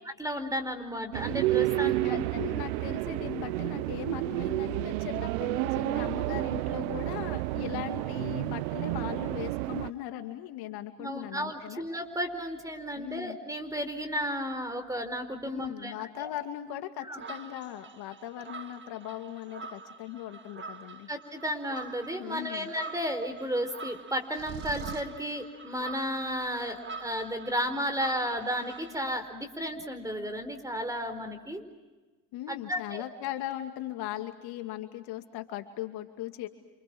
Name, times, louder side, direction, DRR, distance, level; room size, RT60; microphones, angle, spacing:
voice 1, 0.0-2.2 11.0-16.3 17.0-17.2 21.1-31.6 32.5-33.0, equal, 10° right, 9 dB, 4.5 m, -33 dB
sound 1, 1.1-9.9, right 19 dB, 70° right, 0.8 m, -30 dB
voice 2, 1.8-11.8 13.0-13.4 15.5-21.1 22.2-22.7 32.3-36.5, left 12 dB, 55° left, 7 dB, 2.5 m, -39 dB
sound 2, 17.1-29.1, right 4 dB, 25° right, 2.0 m, -45 dB
sound 3, 24.3-25.2, right 9 dB, 50° right, 2.2 m, -40 dB
29.5 x 27.5 x 6.3 m, 1.2 s
hypercardioid pair, 85°, 44 cm